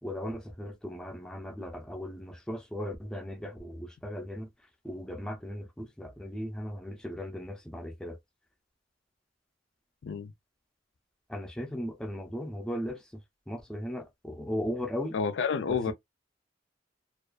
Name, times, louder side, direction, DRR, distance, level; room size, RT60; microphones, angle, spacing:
voice 1, 0.0-4.5 4.8-8.2 11.3-13.2 13.5-15.2 15.7-15.9, equal, 5° left, 0.5 m, -37 dB
voice 2, 15.1-15.9, left 6 dB, 70° left, 0.4 m, -29 dB
2.4 x 2.2 x 2.3 m
head